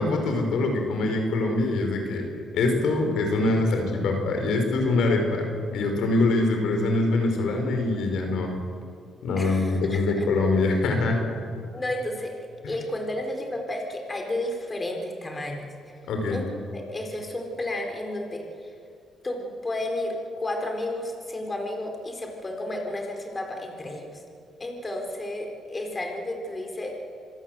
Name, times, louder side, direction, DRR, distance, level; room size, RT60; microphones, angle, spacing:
voice 1, 0.0-2.3 2.5-8.5 9.2-11.2 16.1-16.4, left 2 dB, 75° left, 4 dB, 5.1 m, -24 dB
voice 2, 9.4-10.3 11.7-12.4 12.7-15.6 16.3-16.5 16.7-18.7 19.2-24.2 24.6-27.0, left 1 dB, 25° left, 3 dB, 4.3 m, -32 dB
26.5 x 19.0 x 7.9 m, 2.3 s
cardioid pair, 90°, 0 cm